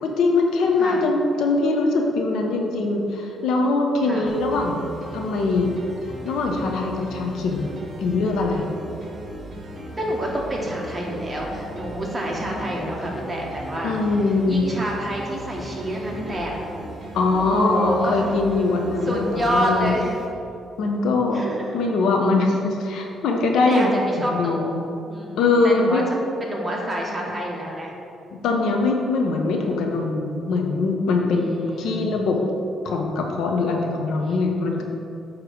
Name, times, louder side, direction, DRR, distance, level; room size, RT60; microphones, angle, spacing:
voice 1, 0.0-4.9 5.1-5.7 6.2-8.7 13.8-14.6 17.1-20.0 20.8-21.4 21.7-24.8 25.4-26.1 28.3-32.4 32.8-34.8, left 3 dB, 80° left, 2 dB, 0.9 m, -22 dB
sound 1, 4.3-20.3, right 1 dB, 40° right, 1.6 m, -37 dB
voice 2, 10.0-13.9 14.5-16.6 17.4-18.2 19.0-20.1 21.3-21.8 23.7-26.0 26.4-27.9 31.3-32.1 34.2-34.5, equal, 20° right, -3 dB, 1.7 m, -28 dB
8.8 x 3.2 x 6.5 m, 2.8 s
cardioid pair, 90°, 0 cm